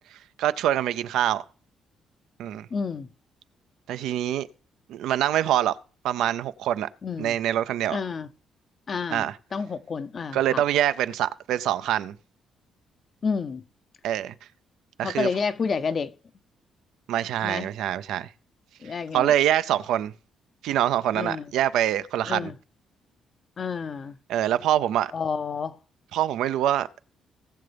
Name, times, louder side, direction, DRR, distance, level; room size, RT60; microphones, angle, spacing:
voice 1, 0.4-1.4 2.4-2.7 3.9-4.5 4.9-5.8 6.0-6.9 7.2-8.0 9.1-9.4 10.3-12.1 14.0-14.3 15.0-15.3 17.1-18.3 18.8-20.1 20.6-22.5 24.3-25.1 26.1-26.9, right 11 dB, 85° right, 0.5 m, -25 dB
voice 2, 2.7-3.1 7.0-7.3 7.9-8.3 8.9-10.6 13.2-13.6 15.0-16.1 17.4-17.7 18.8-19.3 21.1-21.4 22.3-22.5 23.6-24.2 25.1-25.8, left 5 dB, 45° left, 0.6 m, -30 dB
19.0 x 6.8 x 3.4 m
cardioid pair, 90°, 0 cm